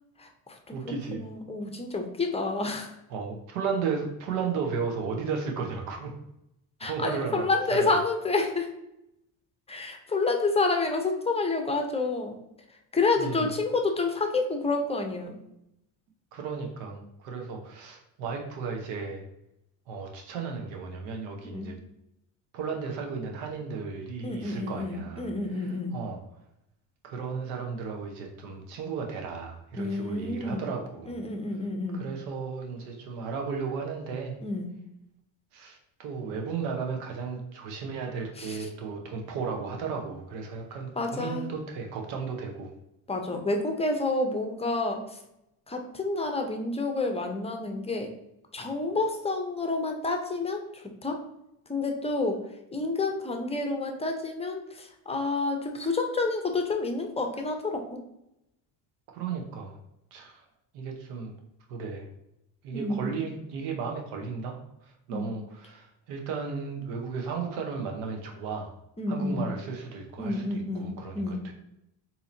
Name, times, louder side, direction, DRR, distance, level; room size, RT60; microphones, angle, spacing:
voice 1, 0.2-2.9 6.8-8.7 9.7-12.4 12.7-15.4 21.4-21.7 24.2-26.0 29.7-30.7 31.1-32.0 34.4-34.7 38.4-38.7 41.0-41.5 43.1-45.2 45.7-48.1 48.5-51.2 51.7-52.5 52.7-58.0 62.7-63.1 65.1-65.3 69.0-69.4 70.2-71.4, left 3 dB, 15° left, 4 dB, 0.6 m, -29 dB
voice 2, 0.7-1.2 3.1-6.1 6.8-7.9 13.2-13.5 16.3-19.2 19.9-21.7 22.5-25.3 25.6-26.2 27.0-31.1 31.9-34.4 35.5-42.7 59.1-59.8 60.1-60.4 60.7-61.3 61.7-62.1 62.6-64.6 65.1-68.7 69.1-70.5 70.8-71.5, right 5 dB, 90° right, 2 dB, 0.8 m, -34 dB
4.1 x 2.8 x 2.6 m, 0.84 s
supercardioid pair, 95°, 48 cm